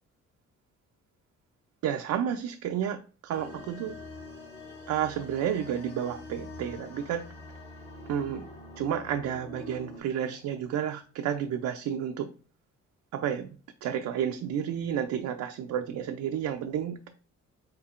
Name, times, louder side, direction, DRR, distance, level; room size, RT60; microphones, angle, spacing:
voice 1, 1.8-3.0 3.2-3.9 4.9-7.2 8.1-8.4 8.8-12.3 13.1-13.5 13.8-17.1, right 9 dB, 70° right, 5 dB, 0.5 m, -31 dB
sound 1, 3.3-10.0, left 2 dB, 35° left, 1.9 m, -45 dB
4.3 x 3.8 x 2.4 m, 0.38 s
cardioid pair, 90°, 30 cm